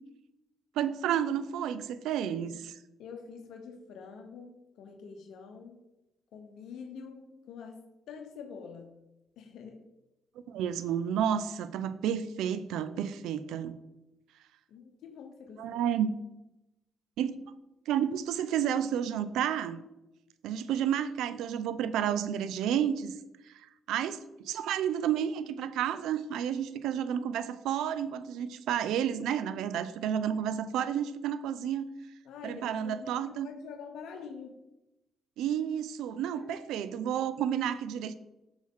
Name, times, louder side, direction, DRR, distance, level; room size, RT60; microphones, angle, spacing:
voice 1, 0.8-2.8 10.5-13.8 15.6-16.1 17.2-17.4 17.9-19.8 20.4-23.2 23.5-23.6 23.9-31.9 32.4-33.5 35.4-38.1, right 9 dB, 85° right, 14 dB, 0.4 m, -31 dB
voice 2, 3.0-5.8 6.3-9.0 9.4-9.8 14.7-15.8 32.2-34.6 36.3-36.7, left 6 dB, 80° left, 4 dB, 0.9 m, -46 dB
6.3 x 6.0 x 3.6 m, 0.95 s
cardioid pair, 90°, 0 cm